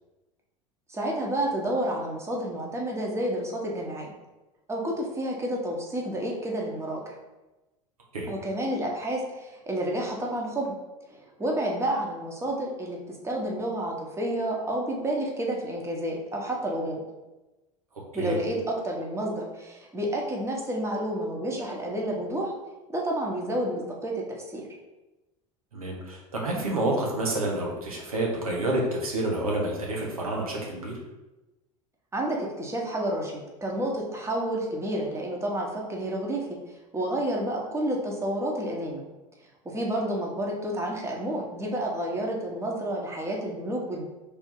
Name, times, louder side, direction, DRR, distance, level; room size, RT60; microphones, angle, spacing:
voice 1, 0.9-4.1 4.7-7.1 8.3-10.7 11.4-17.0 18.1-22.5 22.9-24.2 24.5-24.7 32.1-36.6 36.9-39.0 39.6-44.1, right 1 dB, 15° right, -1 dB, 1.0 m, -30 dB
voice 2, 25.7-30.9, right 1 dB, 90° right, -2 dB, 1.0 m, -28 dB
3.5 x 2.8 x 4.5 m, 1.1 s
hypercardioid pair, 85°, 18 cm